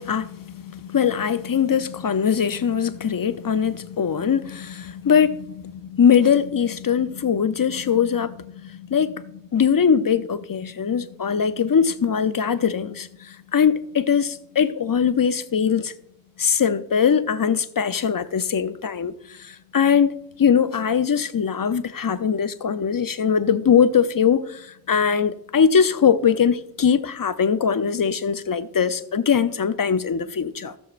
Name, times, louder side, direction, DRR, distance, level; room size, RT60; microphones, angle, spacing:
voice 1, 0.0-15.9 16.4-30.7, left 7 dB, 65° left, 0.6 m, -21 dB
15.0 x 7.1 x 2.5 m
wide cardioid pair, 65°, 36 cm